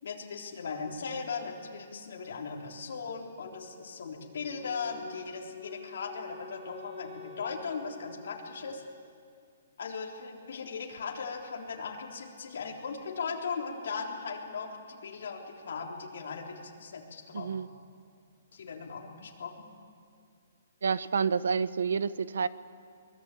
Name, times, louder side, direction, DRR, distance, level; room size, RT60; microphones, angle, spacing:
voice 1, 0.0-8.8 9.8-17.5 18.5-19.7, left 5 dB, 60° left, 0 dB, 3.7 m, -38 dB
Wind instrument woodwind instrument, 4.1-9.2, left 5 dB, ahead, 5.5 m, -49 dB
voice 2, 17.3-17.7 20.8-22.5, right 6 dB, 80° right, 16 dB, 0.9 m, -29 dB
23.0 x 22.0 x 8.6 m, 2.3 s
hypercardioid pair, 180°, 0 cm